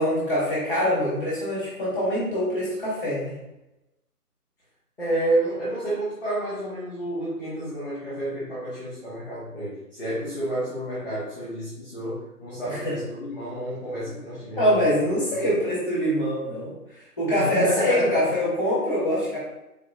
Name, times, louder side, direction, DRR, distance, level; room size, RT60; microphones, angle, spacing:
voice 1, 0.0-3.3 12.7-12.9 14.0-14.1 14.6-16.7 17.2-19.4, equal, 5° right, -8 dB, 1.4 m, -24 dB
voice 2, 5.0-15.6 17.3-18.2, right 1 dB, 15° left, -9 dB, 1.0 m, -30 dB
3.7 x 3.0 x 3.7 m, 0.92 s
figure-of-eight pair, 155°, 47 cm